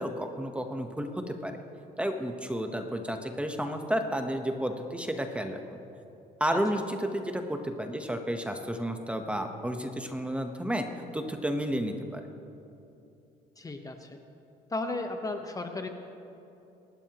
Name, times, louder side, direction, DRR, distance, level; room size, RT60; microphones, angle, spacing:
voice 1, 0.0-1.6 2.0-5.8 6.4-10.9 11.1-12.3, equal, 5° right, 5 dB, 1.0 m, -32 dB
voice 2, 13.6-14.2 14.7-15.9, left 2 dB, 20° left, 5 dB, 1.0 m, -34 dB
26.0 x 12.5 x 3.0 m, 2.8 s
cardioid pair, 110°, 17 cm